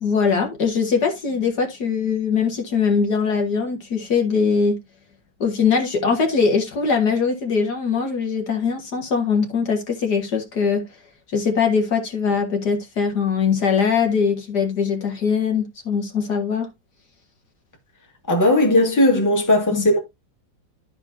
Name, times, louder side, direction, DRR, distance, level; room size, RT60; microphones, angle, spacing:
voice 1, 0.0-4.8 5.4-10.9 11.3-16.7 19.7-19.8, left 5 dB, 60° left, 2.1 m, -21 dB
voice 2, 18.3-20.0, left 1 dB, 10° left, 1.9 m, -17 dB
12.5 x 5.0 x 2.7 m
omnidirectional pair, 2.0 m